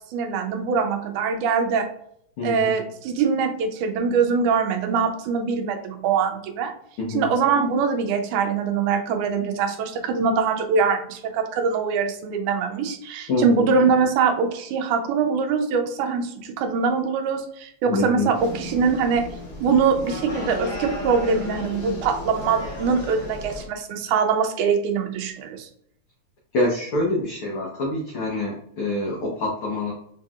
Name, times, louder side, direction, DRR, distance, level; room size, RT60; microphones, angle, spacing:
voice 1, 0.1-1.9 2.4-6.7 7.1-19.3 19.6-25.7, right 5 dB, 85° right, 5 dB, 2.1 m, -23 dB
voice 2, 2.4-2.7 7.0-7.3 13.3-13.7 17.9-18.3 26.5-29.9, left 2 dB, 80° left, -2 dB, 1.2 m, -26 dB
sound 1, 18.3-23.6, left 1 dB, 50° left, 1.3 m, -34 dB
6.1 x 2.8 x 2.4 m, 0.68 s
omnidirectional pair, 3.5 m